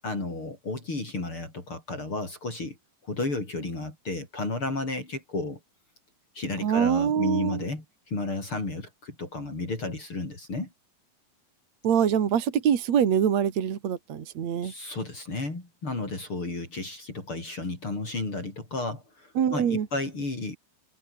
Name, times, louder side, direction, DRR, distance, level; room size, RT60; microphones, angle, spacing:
voice 1, 0.0-2.8 3.0-5.6 6.4-10.7 14.6-20.6, left 2 dB, 45° left, 7.1 m, -33 dB
voice 2, 6.6-7.6 11.8-14.7 19.4-19.9, right 8 dB, 65° right, 3.3 m, -24 dB
omnidirectional pair, 3.4 m